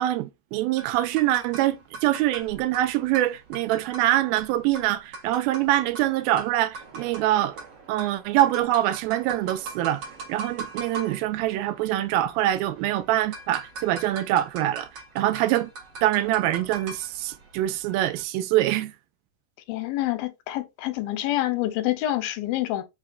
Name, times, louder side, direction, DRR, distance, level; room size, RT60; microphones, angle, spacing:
voice 1, 0.0-7.6 7.9-10.0 10.3-14.9 15.2-15.7 16.0-18.9, right 14 dB, 85° right, 2.4 m, -24 dB
sound 1, 0.8-18.2, right 4 dB, 50° right, 1.9 m, -42 dB
voice 2, 19.7-22.8, left 15 dB, 90° left, 2.4 m, -27 dB
5.7 x 2.9 x 2.4 m
omnidirectional pair, 4.3 m